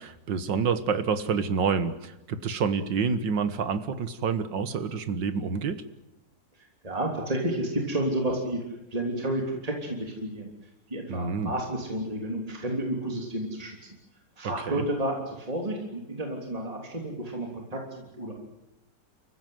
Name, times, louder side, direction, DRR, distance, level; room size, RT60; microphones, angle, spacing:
voice 1, 0.0-5.8 11.1-11.5 14.4-14.8, right 5 dB, 90° right, 12 dB, 2.1 m, -28 dB
voice 2, 6.8-8.6 8.9-10.5 10.9-13.8 14.4-18.3, right 1 dB, 20° right, 1 dB, 3.4 m, -31 dB
29.5 x 15.0 x 9.4 m, 0.94 s
omnidirectional pair, 1.9 m